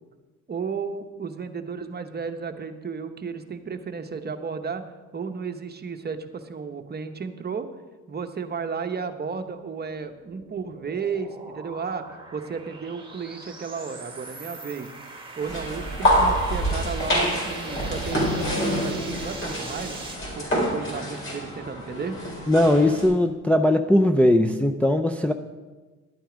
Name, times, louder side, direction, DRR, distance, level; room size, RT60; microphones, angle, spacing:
voice 1, 0.5-4.8 5.1-7.7 8.1-12.1 12.3-14.9 15.4-20.0 20.3-22.2, right 5 dB, 35° right, 7 dB, 1.0 m, -33 dB
sound 1, 9.6-20.2, right 3 dB, 15° right, 1.9 m, -42 dB
sound 2, 15.4-23.1, equal, 45° left, 4.4 m, -26 dB
voice 2, 22.5-25.3, left 1 dB, 5° left, 5 dB, 0.5 m, -19 dB
11.5 x 8.9 x 5.0 m, 1.3 s
cardioid pair, 90°, 30 cm